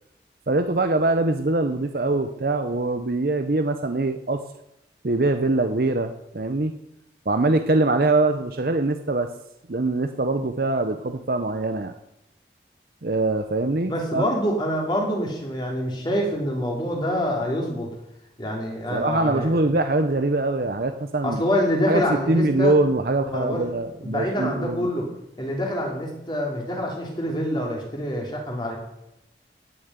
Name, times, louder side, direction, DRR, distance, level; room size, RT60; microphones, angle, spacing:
voice 1, 0.5-4.4 5.0-6.7 7.3-9.3 9.7-11.9 13.0-14.2 18.9-21.4 21.9-24.9, right 2 dB, 55° right, 7 dB, 0.7 m, -23 dB
voice 2, 13.9-17.9 18.4-19.6 21.2-22.7 23.2-23.7 24.0-25.1 25.4-28.8, equal, 25° left, -1 dB, 3.3 m, -26 dB
17.5 x 7.3 x 8.1 m, 0.87 s
head